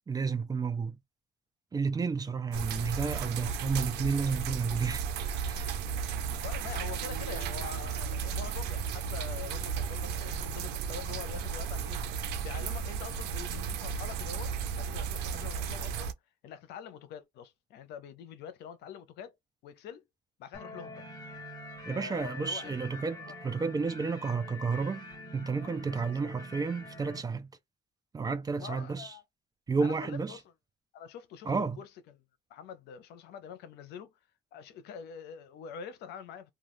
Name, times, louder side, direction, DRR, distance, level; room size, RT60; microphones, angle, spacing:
voice 1, 0.1-1.0 1.7-5.0 5.4-5.8 21.9-25.1 25.3-27.5 28.1-29.1 29.7-30.4 31.5-31.8, right 5 dB, 20° right, 0.5 m, -31 dB
sound 1, 2.5-16.1, right 6 dB, 85° right, 0.6 m, -34 dB
voice 2, 6.4-16.1 16.4-19.3 19.6-20.0 20.4-21.0 21.9-22.8 23.3-23.4 25.6-26.1 28.6-29.2 29.8-30.4 30.9-32.2 32.5-34.1 34.5-36.5, left 7 dB, 80° left, 0.7 m, -45 dB
sound 2, 20.5-27.2, left 1 dB, 25° left, 1.1 m, -45 dB
2.4 x 2.3 x 3.1 m
cardioid pair, 110°, 17 cm